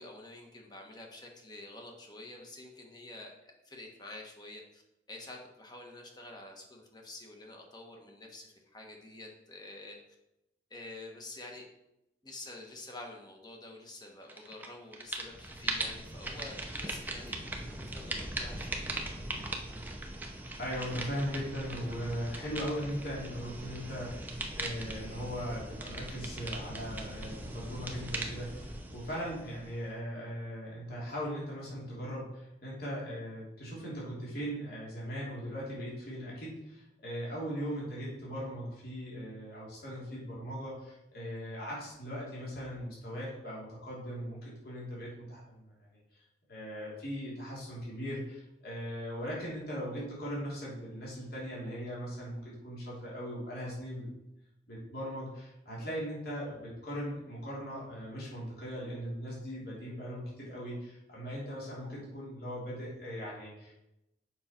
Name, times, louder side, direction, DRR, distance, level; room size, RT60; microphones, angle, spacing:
voice 1, 0.0-4.8 5.1-10.0 10.7-11.6 12.2-18.9, left 2 dB, 25° left, 1 dB, 1.3 m, -48 dB
sound 1, 14.3-14.7 14.9-29.9, right 1 dB, 10° right, 0.8 m, -40 dB
voice 2, 20.6-45.7 46.1-46.2 46.5-54.1 54.7-63.8, equal, 60° left, -6 dB, 2.9 m, -39 dB
7.6 x 5.7 x 4.4 m, 0.88 s
head